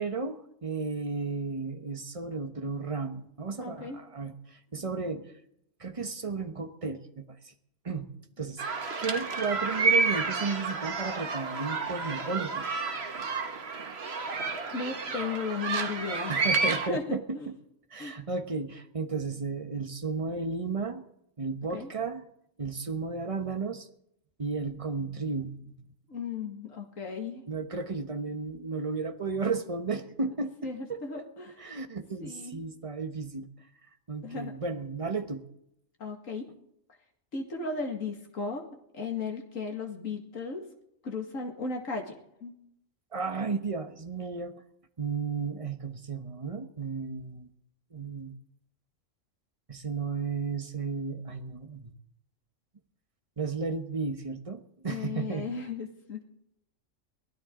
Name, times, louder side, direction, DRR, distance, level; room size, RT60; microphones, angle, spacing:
voice 1, 0.0-5.3 5.8-7.5 7.8-8.1 8.4-8.6 9.0-12.6 16.3-17.5 17.9-21.0 21.4-22.3 22.6-23.9 24.4-25.7 27.5-31.2 31.6-33.5 34.1-35.4 43.1-44.5 45.0-47.5 47.9-48.4 49.7-51.9 53.4-55.5, right 4 dB, 30° right, 7 dB, 1.2 m, -34 dB
voice 2, 3.6-4.0 14.7-17.5 18.0-18.1 21.7-21.9 26.1-27.4 30.3-30.4 30.6-31.6 32.2-32.6 34.2-34.5 36.0-36.5 37.3-38.7 38.9-40.7 41.0-42.5 54.9-56.2, left 4 dB, 85° left, 2 dB, 2.4 m, -36 dB
sound 1, 8.6-16.9, right 4 dB, 55° right, 1.5 m, -30 dB
23.0 x 16.5 x 3.8 m, 0.78 s
omnidirectional pair, 1.3 m